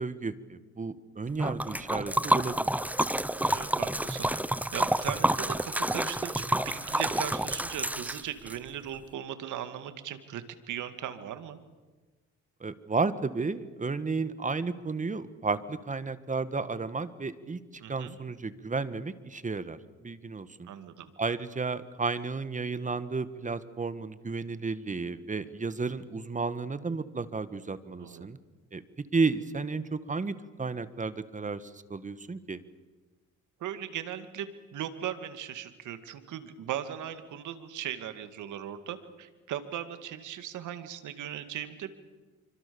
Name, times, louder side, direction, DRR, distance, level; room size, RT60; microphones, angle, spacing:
voice 1, 0.0-2.7 12.6-20.7 21.2-28.4 28.7-28.8 29.1-32.6, right 4 dB, 25° right, 13 dB, 1.6 m, -33 dB
Liquid, 1.4-8.6, right 1 dB, 5° right, 0.9 m, -29 dB
voice 2, 3.5-4.3 4.7-11.6 17.8-18.2 20.6-21.1 28.0-28.3 33.6-41.9, right 10 dB, 80° right, 10 dB, 2.3 m, -38 dB
27.0 x 24.5 x 7.1 m, 1.3 s
cardioid pair, 90°, 30 cm